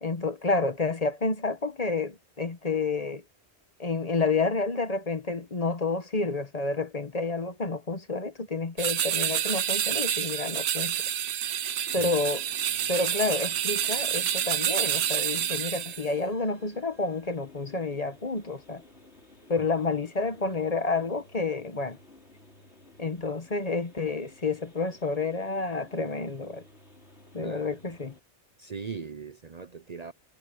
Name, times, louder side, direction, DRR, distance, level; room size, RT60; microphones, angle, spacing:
voice 1, 0.0-3.2 3.8-11.0 11.9-12.4 12.9-18.8 19.5-22.0 23.0-26.6 27.3-28.1, left 3 dB, 35° left, 1.2 m, -29 dB
sound 1, 8.8-16.1, right 10 dB, 70° right, 1.0 m, -28 dB
sound 2, 11.9-28.2, left 2 dB, 75° left, 5.4 m, -55 dB
voice 2, 28.6-30.1, right 5 dB, 40° right, 0.7 m, -39 dB
omnidirectional pair, 1.1 m